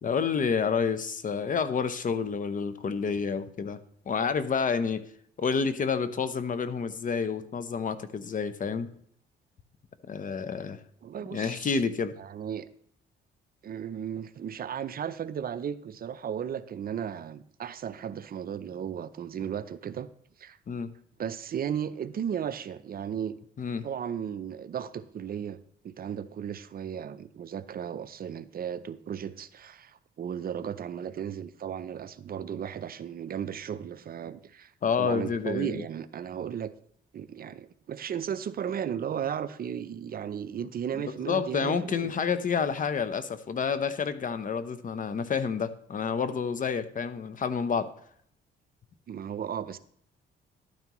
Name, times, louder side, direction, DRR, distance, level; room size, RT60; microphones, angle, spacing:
voice 1, 0.0-3.8 4.1-5.0 5.4-8.9 10.1-10.8 11.3-12.1 20.7-20.9 23.6-23.9 34.8-35.8 41.1-47.9, left 6 dB, 40° left, 12 dB, 0.8 m, -29 dB
voice 2, 11.0-11.8 12.2-12.7 13.6-20.1 20.4-20.6 21.2-23.4 23.8-25.6 25.8-34.7 35.0-36.7 37.1-42.1 49.1-49.8, right 8 dB, 50° right, 13 dB, 0.6 m, -35 dB
12.0 x 9.3 x 3.1 m, 0.64 s
cardioid pair, 90°, 20 cm